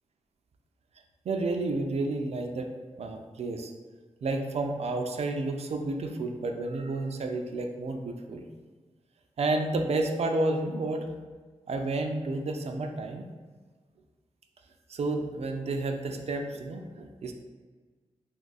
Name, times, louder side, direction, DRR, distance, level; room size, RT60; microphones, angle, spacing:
voice 1, 1.2-2.7 3.0-3.7 4.2-8.4 9.4-11.1 11.7-13.3 14.9-17.3, right 2 dB, 65° right, 4 dB, 0.4 m, -31 dB
2.6 x 2.4 x 4.0 m, 1.4 s
wide cardioid pair, 115°, 12 cm